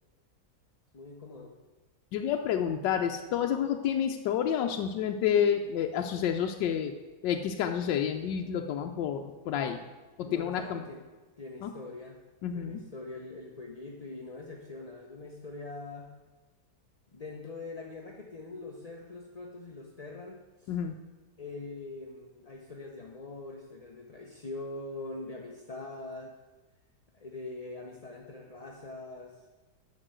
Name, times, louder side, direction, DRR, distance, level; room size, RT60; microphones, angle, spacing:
voice 1, 0.9-1.6 10.3-11.0 11.4-12.2 12.5-16.1 17.1-20.7 21.4-26.3 27.1-29.4, left 2 dB, 30° left, 0 dB, 0.7 m, -43 dB
voice 2, 2.1-6.9 7.2-9.8 10.2-10.8 11.6-11.7 12.4-12.8 20.7-21.0, left 8 dB, 90° left, 4 dB, 1.3 m, -29 dB
9.8 x 6.5 x 8.0 m, 1.2 s
omnidirectional pair, 1.9 m